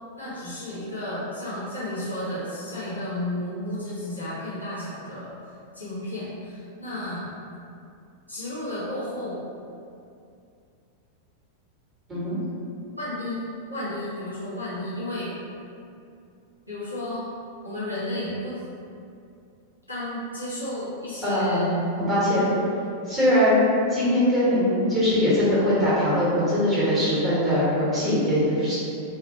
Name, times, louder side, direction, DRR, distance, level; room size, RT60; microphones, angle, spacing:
voice 1, 0.2-5.3 5.7-7.3 8.3-9.4 12.9-15.3 16.7-17.3 17.6-18.6 19.9-21.7 22.3-22.6, left 1 dB, 90° right, -11 dB, 0.8 m, -32 dB
voice 2, 21.2-21.7 22.0-22.5 23.1-28.8, left 1 dB, 20° right, -10 dB, 1.1 m, -21 dB
2.3 x 2.1 x 2.9 m, 2.5 s
figure-of-eight pair, 90°, 0 cm